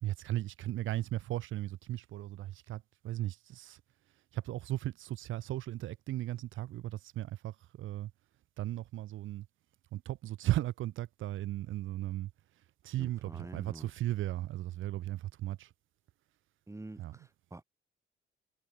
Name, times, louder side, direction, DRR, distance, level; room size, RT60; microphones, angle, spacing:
voice 1, 0.0-3.8 4.3-8.1 8.6-9.5 9.9-12.3 12.8-15.7 17.0-17.1, right 14 dB, 80° right, 1.4 m, -36 dB
voice 2, 13.0-13.9 16.7-17.6, right 2 dB, 15° right, 3.7 m, -47 dB
cardioid pair, 90°, 20 cm